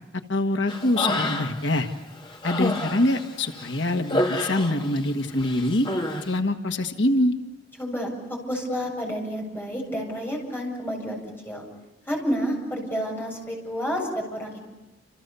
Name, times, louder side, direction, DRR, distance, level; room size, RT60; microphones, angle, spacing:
voice 1, 0.3-1.9 2.4-5.9 6.2-7.3, left 1 dB, 80° left, 6 dB, 1.5 m, -24 dB
Human voice, 0.7-1.8 2.1-5.1 5.4-6.2, left 1 dB, 25° left, 2.3 m, -28 dB
voice 2, 7.8-11.6 12.1-14.5, equal, 10° left, 0 dB, 7.5 m, -30 dB
29.5 x 28.5 x 6.9 m, 1.1 s
head